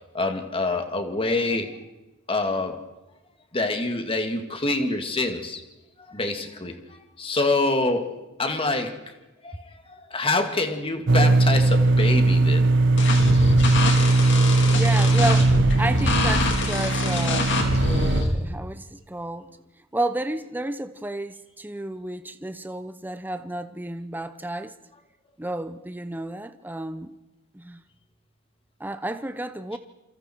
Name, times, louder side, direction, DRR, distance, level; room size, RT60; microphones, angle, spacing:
voice 1, 0.1-1.7 2.3-2.8 3.5-5.6 6.1-6.7 7.2-8.1 8.4-9.0 9.4-12.7, left 2 dB, 25° left, 2.3 m, -26 dB
sound 1, 11.1-18.2, right 2 dB, 60° right, 0.7 m, -19 dB
sound 2, 13.0-18.3, left 2 dB, 60° left, 3.7 m, -25 dB
voice 2, 14.7-19.5 19.9-24.7 25.4-27.1 27.5-27.8 28.8-29.8, right 1 dB, 10° right, 0.8 m, -31 dB
28.0 x 25.5 x 4.6 m
head